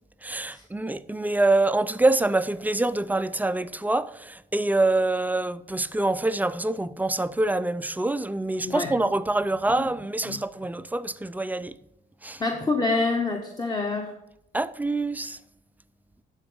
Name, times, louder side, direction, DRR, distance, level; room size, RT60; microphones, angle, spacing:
voice 1, 0.2-11.7 12.2-12.4 14.5-15.4, right 2 dB, 10° right, 0.3 m, -25 dB
voice 2, 12.4-14.1, left 3 dB, 20° left, 0.9 m, -27 dB
11.5 x 3.9 x 5.3 m
cardioid pair, 90°, 20 cm